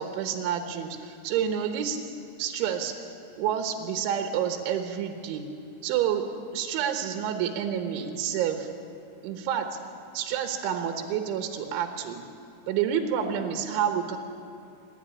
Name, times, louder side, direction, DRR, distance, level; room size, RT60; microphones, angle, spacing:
voice 1, 0.0-2.1 2.4-2.9 3.4-5.5 5.8-6.2 6.5-8.7 9.2-9.8 10.1-12.2 12.7-14.2, right 8 dB, 75° right, 4 dB, 3.4 m, -29 dB
28.0 x 11.0 x 9.8 m, 2.5 s
omnidirectional pair, 5.9 m